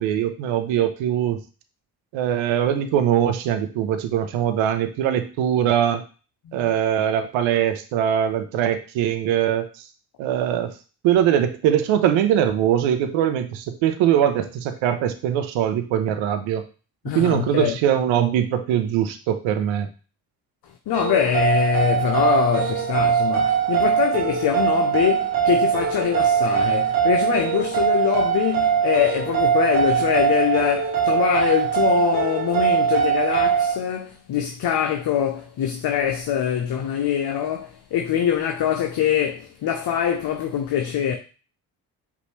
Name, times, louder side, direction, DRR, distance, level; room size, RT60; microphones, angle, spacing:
voice 1, 0.0-1.4 2.1-6.0 6.5-9.7 10.2-10.7 11.0-16.6 17.1-19.9, right 10 dB, 65° right, 0.7 m, -21 dB
voice 2, 17.0-17.8 20.9-41.1, left 9 dB, 50° left, 0.7 m, -23 dB
sound 1, 20.9-33.7, right 8 dB, 85° right, 1.2 m, -21 dB
5.2 x 2.7 x 3.1 m
hypercardioid pair, 45°, 50 cm